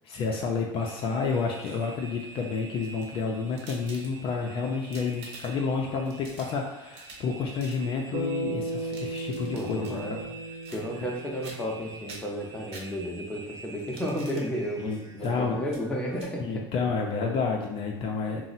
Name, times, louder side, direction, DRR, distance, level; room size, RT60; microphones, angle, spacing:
voice 1, 0.0-10.2 14.8-15.6 16.4-18.5, left 4 dB, 50° left, 0 dB, 0.5 m, -30 dB
sound 1, 0.7-16.3, right 3 dB, 30° right, 0.5 m, -48 dB
sound 2, 1.4-2.1 2.8-4.4 4.8-5.7 6.1-7.3 7.6-7.8 8.7-10.0 10.6-11.1 11.4-11.8 12.1-13.3 13.8-14.5 15.2-15.3 15.7-15.8 16.1-16.3, right 2 dB, 55° right, 0.9 m, -48 dB
Bass guitar, 8.1-12.5, right 2 dB, 90° right, 0.5 m, -36 dB
voice 2, 9.5-10.2 10.7-16.7, equal, 10° left, -2 dB, 0.7 m, -33 dB
2.6 x 2.0 x 4.0 m, 0.95 s
supercardioid pair, 105°, 12 cm